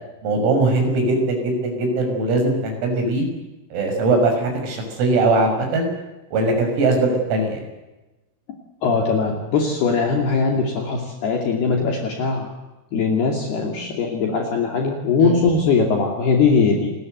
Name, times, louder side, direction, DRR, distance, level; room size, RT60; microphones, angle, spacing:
voice 1, 0.2-3.3 3.7-5.9 6.3-7.6 15.2-15.3, right 2 dB, 85° right, 4 dB, 8.9 m, -20 dB
voice 2, 8.8-12.5 12.9-16.9, left 4 dB, 55° left, 1 dB, 4.3 m, -20 dB
29.0 x 21.0 x 8.0 m, 1.1 s
omnidirectional pair, 5.9 m